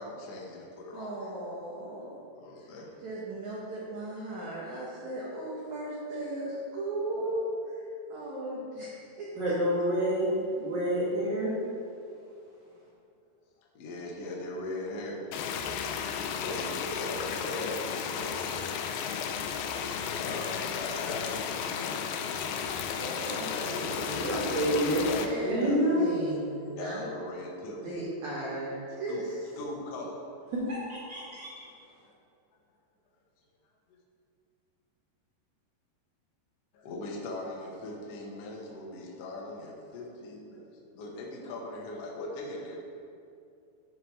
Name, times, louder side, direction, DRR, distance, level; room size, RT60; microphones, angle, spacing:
voice 1, 0.0-1.3 2.3-3.0 13.7-15.3 16.1-18.8 19.9-22.0 23.5-24.2 25.0-25.8 26.7-27.9 29.1-29.2 29.6-30.3 36.7-42.8, left 2 dB, 75° left, -2 dB, 1.4 m, -40 dB
voice 2, 0.9-2.2 3.0-7.8 8.1-9.5 23.0-24.7 25.2-27.1 27.8-29.4, right 1 dB, 65° right, -6 dB, 1.9 m, -37 dB
voice 3, 9.4-10.3 10.6-11.5 24.2-25.0 25.4-26.1 30.5-31.7, equal, 40° right, -8 dB, 1.6 m, -28 dB
sound 1, 15.3-25.3, left 7 dB, 90° left, 2.1 m, -33 dB
12.5 x 4.8 x 4.8 m, 2.5 s
omnidirectional pair, 5.0 m